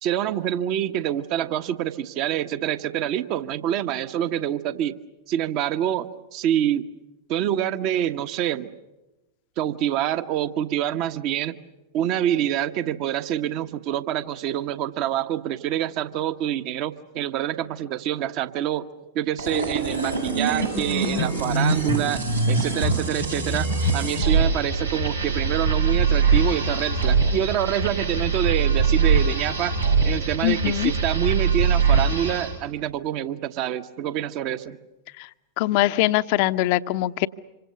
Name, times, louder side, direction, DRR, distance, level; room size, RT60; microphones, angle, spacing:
voice 1, 0.0-5.0 5.3-6.8 7.3-8.7 9.6-11.6 11.9-18.9 19.1-29.8 30.0-34.8, right 11 dB, 40° right, 11 dB, 1.2 m, -26 dB
sound 1, 19.4-32.6, right 4 dB, 90° right, 6.0 m, -23 dB
voice 2, 30.4-30.9 35.6-37.3, left 16 dB, 45° left, 13 dB, 0.8 m, -22 dB
26.5 x 25.5 x 6.8 m, 1.0 s
figure-of-eight pair, 90°, 0 cm